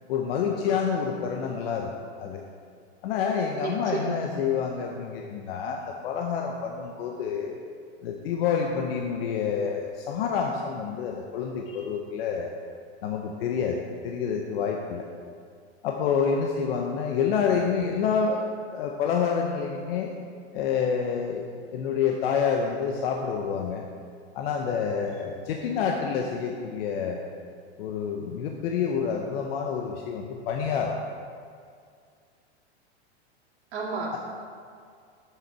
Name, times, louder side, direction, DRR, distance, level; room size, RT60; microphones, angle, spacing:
voice 1, 0.1-1.9 2.2-2.4 3.0-7.5 8.0-12.5 13.0-15.1 15.8-18.5 18.7-20.1 20.5-21.4 21.7-23.9 24.3-27.2 27.8-31.0 34.1-34.2, left 6 dB, 60° left, 1 dB, 0.8 m, -28 dB
voice 2, 3.6-4.2 33.7-34.2, right 4 dB, 80° right, -2 dB, 2.1 m, -31 dB
7.2 x 6.9 x 4.7 m, 2.2 s
supercardioid pair, 145°, 34 cm